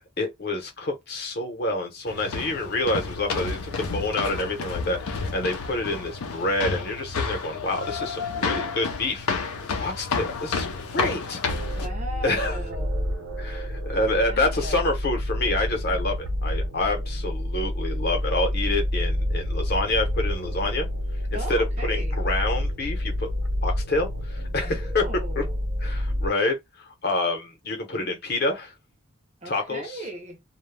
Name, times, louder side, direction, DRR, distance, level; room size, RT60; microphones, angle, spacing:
voice 1, 0.2-9.5 9.8-11.8 12.2-12.6 13.4-20.9 21.5-23.3 23.6-25.0 25.4-25.5 25.8-28.7 29.5-29.8, left 2 dB, 45° left, 0.8 m, -27 dB
sound 1, 2.1-11.9, left 4 dB, 85° left, 0.5 m, -30 dB
sound 2, 11.5-26.3, left 1 dB, 75° right, 0.7 m, -28 dB
voice 2, 11.7-13.1 14.1-14.8 21.3-22.2 24.6-25.6 27.9-28.1 29.4-30.4, right 1 dB, 30° right, 0.5 m, -38 dB
2.2 x 2.0 x 3.2 m
head